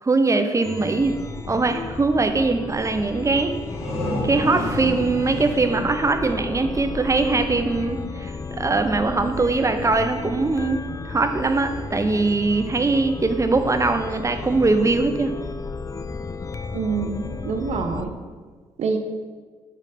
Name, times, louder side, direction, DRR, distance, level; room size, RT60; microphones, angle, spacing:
voice 1, 0.0-1.2 1.5-3.6 4.2-10.8 11.1-15.3, right 3 dB, 25° right, 7 dB, 0.6 m, -21 dB
Chime, 0.6-18.0, left 4 dB, 25° left, 0.4 m, -33 dB
sound 1, 3.4-7.0, left 1 dB, 55° left, 1.6 m, -31 dB
voice 2, 16.7-18.1 18.8-19.0, right 5 dB, 65° right, 6 dB, 0.6 m, -26 dB
6.7 x 3.2 x 5.0 m, 1.5 s
supercardioid pair, 55°, 12 cm